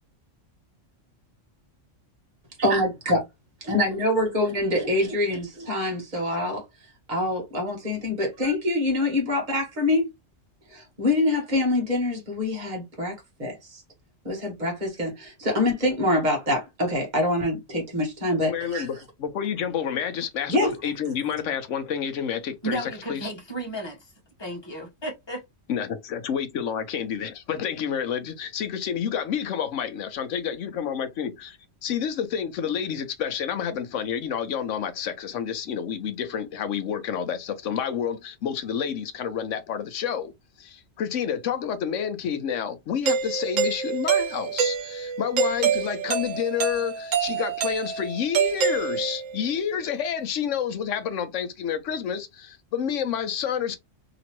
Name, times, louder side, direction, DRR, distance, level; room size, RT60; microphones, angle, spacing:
voice 1, 2.6-3.2 3.6-6.6 7.1-10.1 10.7-13.8 14.2-18.9 20.5-20.7, left 1 dB, 35° right, 1.6 m, -25 dB
voice 2, 18.4-23.3 25.7-31.5 31.8-53.8, left 8 dB, 75° left, 1.0 m, -29 dB
voice 3, 22.6-24.1 24.4-25.4, right 1 dB, 20° left, 1.2 m, -33 dB
Doorbell, 43.1-49.4, right 6 dB, 85° right, 1.1 m, -26 dB
3.0 x 3.0 x 2.9 m
omnidirectional pair, 1.3 m